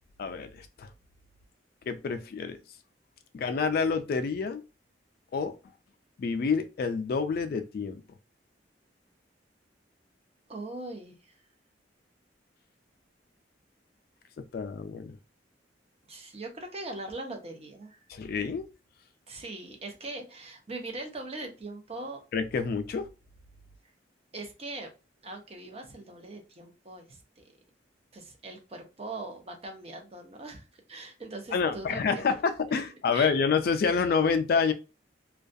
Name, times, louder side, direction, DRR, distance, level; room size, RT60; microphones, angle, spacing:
voice 1, 0.2-0.9 1.9-2.6 3.3-4.6 5.3-5.6 6.2-8.0 14.5-15.2 18.1-18.6 22.3-23.1 31.5-34.7, left 5 dB, 55° left, 0.3 m, -28 dB
voice 2, 10.5-11.1 16.1-18.0 19.3-22.2 24.3-24.9 25.2-27.4 28.1-32.2 33.1-33.3, right 2 dB, 35° right, 0.6 m, -41 dB
2.3 x 2.2 x 2.6 m
head